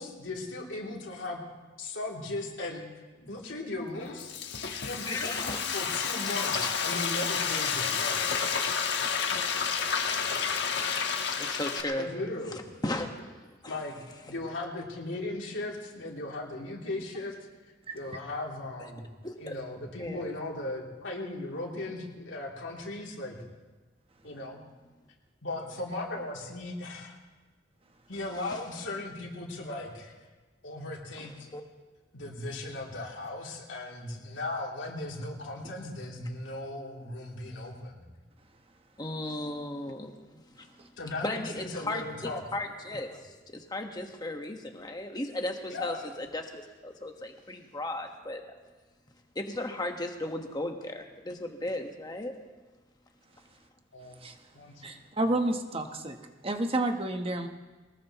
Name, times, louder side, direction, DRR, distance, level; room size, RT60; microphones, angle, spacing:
voice 1, 0.0-1.4 1.8-2.8 3.1-4.3 4.8-8.4 11.9-12.6 13.7-14.0 14.3-17.3 17.9-19.1 19.4-23.4 24.2-24.6 25.4-27.2 28.1-30.1 30.6-31.5 32.1-38.0 39.5-39.6 41.0-42.4 45.7-46.0 53.9-54.2 54.5-54.9, left 2 dB, 85° left, -3 dB, 3.0 m, -37 dB
Frying (food), 3.9-11.8, left 6 dB, 65° left, 1.3 m, -30 dB
voice 2, 5.1-5.6 9.7-9.8 11.3-12.1 12.5-13.8 19.2-19.6 20.0-20.3 24.2-24.4 28.5-28.6 31.2-31.6 39.0-40.7 41.2-48.4 49.3-52.4, left 1 dB, 20° left, 3 dB, 1.4 m, -36 dB
voice 3, 54.8-56.2 56.4-57.5, right 2 dB, 30° right, 5 dB, 1.1 m, -30 dB
22.5 x 20.0 x 3.1 m, 1.3 s
head